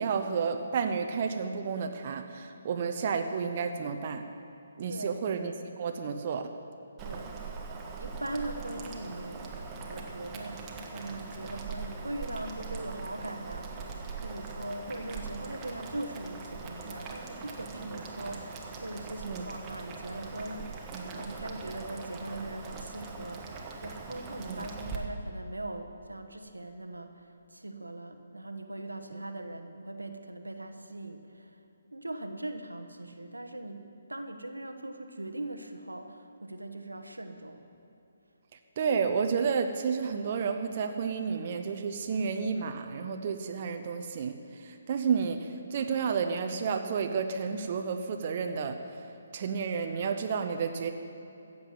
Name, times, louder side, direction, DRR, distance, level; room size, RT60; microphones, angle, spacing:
voice 1, 0.0-4.3 4.8-6.5 19.2-19.5 20.9-21.2 24.5-24.7 38.8-48.8 49.3-50.9, right 6 dB, 45° right, 5 dB, 0.8 m, -31 dB
voice 2, 4.9-5.3 7.0-7.3 8.0-9.5 9.9-20.7 21.0-31.6 31.9-37.7, right 1 dB, 90° right, 6 dB, 1.1 m, -40 dB
Boiling, 7.0-25.0, right 4 dB, 20° right, 1.4 m, -41 dB
14.5 x 7.9 x 7.3 m, 2.8 s
figure-of-eight pair, 140°, 0 cm